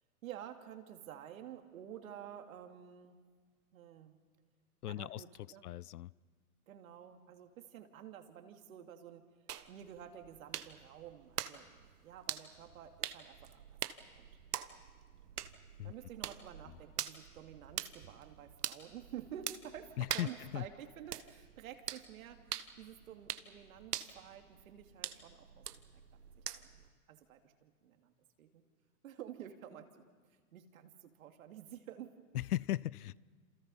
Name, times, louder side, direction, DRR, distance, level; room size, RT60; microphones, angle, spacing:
voice 1, 0.2-3.2 3.7-4.2 4.9-5.7 6.7-9.2 9.7-13.8 14.0-14.3 15.8-25.7 26.2-28.1 28.4-28.6 29.0-30.0 30.5-32.2, right 10 dB, 60° right, 5 dB, 2.7 m, -51 dB
voice 2, 4.8-5.2 5.6-6.1 15.8-15.9 16.7-16.8 20.0-20.7 32.3-33.2, left 14 dB, 80° left, 24 dB, 0.6 m, -37 dB
sound 1, 9.5-26.9, right 9 dB, 85° right, 1.4 m, -45 dB
28.5 x 28.0 x 5.5 m, 1.5 s
hypercardioid pair, 140°, 45 cm